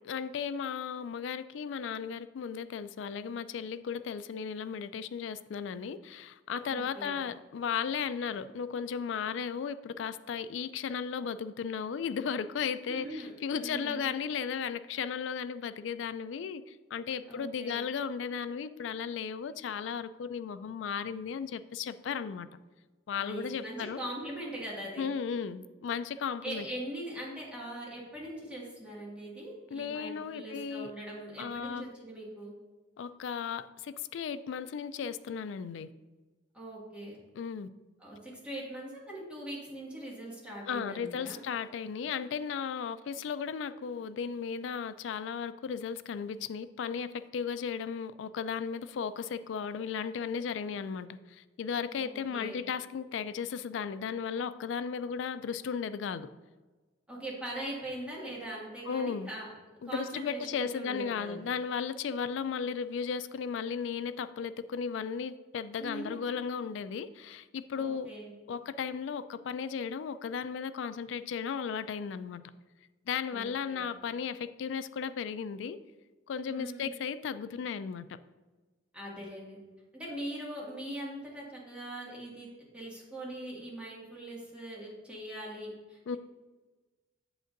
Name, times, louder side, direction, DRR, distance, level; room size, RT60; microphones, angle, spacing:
voice 1, 0.0-22.5 23.1-24.0 25.0-26.6 29.7-30.9 31.4-31.9 33.0-35.9 37.3-37.7 40.7-56.3 58.9-59.3 59.8-68.1 68.5-72.4 73.1-75.8 76.3-78.2 86.1-86.2, left 6 dB, 70° left, 14 dB, 0.3 m, -35 dB
voice 2, 6.7-7.2 12.9-14.1 17.2-17.8 23.2-25.1 26.4-32.5 36.5-37.2 38.0-41.4 51.9-52.7 57.1-59.5 59.8-61.4 65.8-66.3 67.7-68.3 73.3-73.9 76.5-76.9 78.9-79.6 79.9-82.5 82.7-86.2, right 1 dB, 5° right, -6 dB, 1.9 m, -41 dB
7.9 x 7.6 x 2.6 m, 1.3 s
head